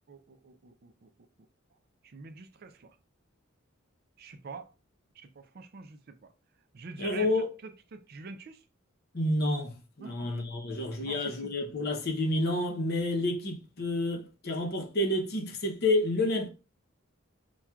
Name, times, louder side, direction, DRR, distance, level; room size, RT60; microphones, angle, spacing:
voice 1, 0.1-1.1 2.0-3.0 4.2-4.7 5.2-6.3 6.7-7.3 7.6-8.6 10.0-10.3 11.0-11.6, right 4 dB, 50° right, 0.4 m, -46 dB
voice 2, 7.0-7.5 9.1-16.5, left 2 dB, 50° left, 0.7 m, -29 dB
5.7 x 2.3 x 2.3 m
head